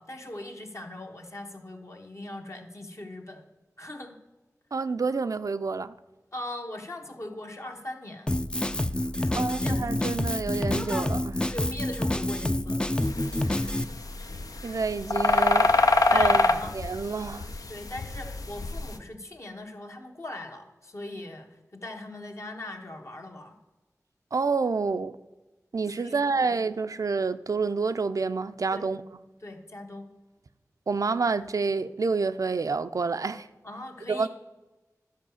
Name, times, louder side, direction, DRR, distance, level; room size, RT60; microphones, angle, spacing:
voice 1, 0.0-3.5 3.8-4.2 6.3-8.3 9.2-9.9 11.5-12.8 16.0-16.7 17.7-23.6 25.9-26.6 28.7-28.9 29.4-30.1 33.6-34.3, left 1 dB, 50° left, 1.3 m, -40 dB
voice 2, 4.7-5.9 9.3-11.4 14.6-15.7 16.1-16.4 16.7-17.5 24.3-25.2 25.7-29.0 30.9-33.5 34.1-34.3, right 4 dB, 70° right, 0.4 m, -28 dB
Drum kit, 8.3-13.8, left 1 dB, 15° left, 0.4 m, -28 dB
sound 1, 13.0-18.9, left 3 dB, 75° left, 0.6 m, -24 dB
11.0 x 4.8 x 7.0 m
wide cardioid pair, 50°, 6 cm